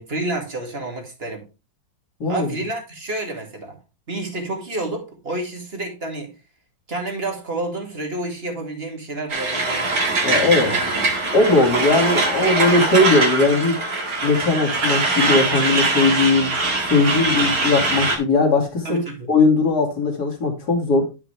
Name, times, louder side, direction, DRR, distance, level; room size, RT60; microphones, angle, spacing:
voice 1, 0.0-1.5 2.3-3.8 4.1-6.3 6.9-11.0 18.8-19.3, right 2 dB, 30° right, 2.3 m, -30 dB
Truck, 9.3-18.2, right 2 dB, 50° right, 2.2 m, -22 dB
voice 2, 10.2-10.7 11.3-13.8 14.2-16.5 16.9-19.0 19.3-21.0, left 3 dB, 55° left, 2.8 m, -19 dB
10.5 x 6.0 x 3.3 m
omnidirectional pair, 2.0 m